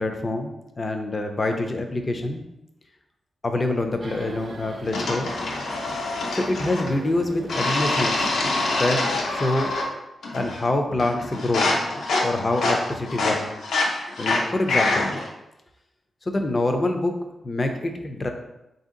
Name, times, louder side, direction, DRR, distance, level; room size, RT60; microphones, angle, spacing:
voice 1, 0.0-2.4 3.4-5.3 6.3-8.3 8.7-9.8 10.3-11.8 12.2-13.4 14.2-15.1 16.3-17.1 17.4-18.3, left 2 dB, 25° left, 4 dB, 0.4 m, -26 dB
sound 1, 4.0-9.9, right 2 dB, 40° right, 0.4 m, -41 dB
sound 2, 4.9-7.0 7.5-9.9 10.2-10.7 11.0-15.3, left 2 dB, 80° left, 0.7 m, -25 dB
3.7 x 2.7 x 3.7 m, 0.91 s
wide cardioid pair, 160°, 0 cm